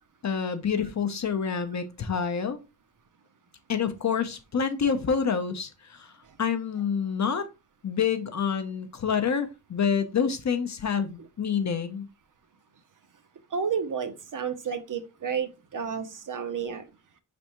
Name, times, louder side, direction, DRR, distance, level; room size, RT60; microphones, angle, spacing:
voice 1, 0.2-2.6 3.7-6.1 6.4-7.5 7.8-12.1, left 6 dB, 45° left, 0.6 m, -27 dB
voice 2, 13.5-16.8, right 6 dB, 50° right, 0.6 m, -31 dB
5.3 x 3.4 x 2.9 m
wide cardioid pair, 160°, 41 cm